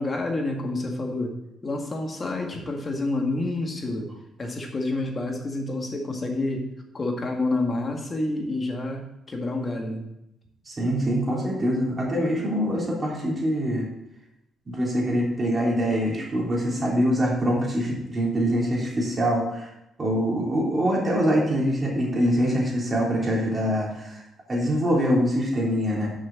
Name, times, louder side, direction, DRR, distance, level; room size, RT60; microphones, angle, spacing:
voice 1, 0.0-1.3 1.6-4.1 4.4-6.7 6.9-10.0, left 2 dB, 30° left, 2 dB, 1.9 m, -28 dB
voice 2, 10.7-13.8 14.7-19.7 20.0-24.1 24.5-26.1, equal, 30° right, -3 dB, 3.6 m, -24 dB
6.5 x 5.9 x 7.2 m, 0.86 s
cardioid pair, 90°, 0 cm